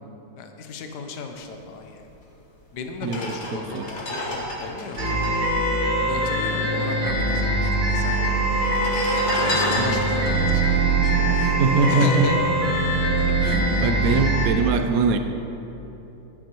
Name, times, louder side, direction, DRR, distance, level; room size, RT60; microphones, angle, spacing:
voice 1, 0.4-2.0 2.7-5.0 6.0-8.8 9.4-11.4 11.9-12.6 13.2-14.3, left 4 dB, 65° left, 5 dB, 1.3 m, -35 dB
sound 1, 2.3-2.4 2.9-6.6 6.9-7.0 7.2-7.9 8.5-12.0 12.5-12.7, left 1 dB, 40° left, 1.3 m, -31 dB
voice 2, 3.5-3.9 9.8-10.0 11.3-12.3 13.3-15.2, right 4 dB, 70° right, 7 dB, 0.8 m, -23 dB
sound 2, 5.0-14.5, right 2 dB, 40° right, 1.9 m, -22 dB
13.5 x 8.3 x 3.0 m, 3.0 s
omnidirectional pair, 2.0 m